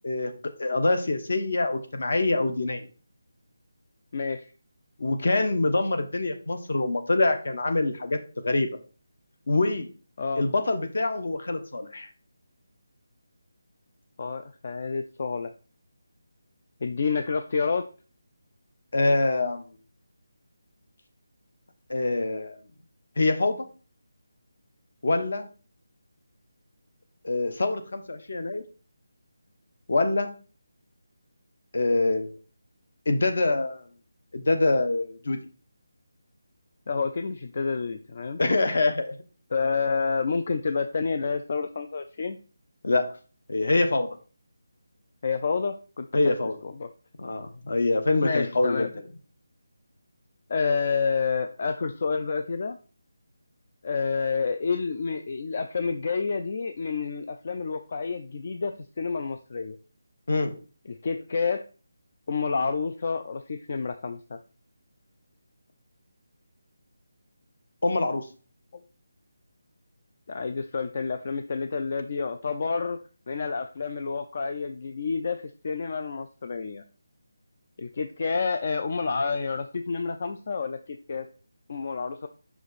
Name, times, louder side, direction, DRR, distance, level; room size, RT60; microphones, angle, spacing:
voice 1, 0.0-2.9 5.0-8.7 9.5-9.9 10.4-12.1 18.9-19.7 21.9-22.6 23.2-23.7 25.0-25.5 27.2-28.6 29.9-30.3 31.7-32.3 33.0-33.9 34.3-35.4 38.4-39.1 42.8-43.1 43.5-44.2 46.1-46.6 47.2-48.9 60.3-60.5 67.8-68.3, left 2 dB, 60° left, 7 dB, 1.1 m, -25 dB
voice 2, 4.1-4.5 10.2-10.4 14.2-15.5 16.8-17.8 36.9-38.4 39.5-42.4 45.2-46.3 46.8-46.9 48.2-48.9 50.5-52.8 53.8-59.8 60.9-61.6 62.3-64.4 70.3-73.0 73.3-76.8 77.8-81.2 81.7-82.3, left 5 dB, 40° left, 7 dB, 0.4 m, -29 dB
5.6 x 5.0 x 4.1 m, 0.37 s
figure-of-eight pair, 175°, 0 cm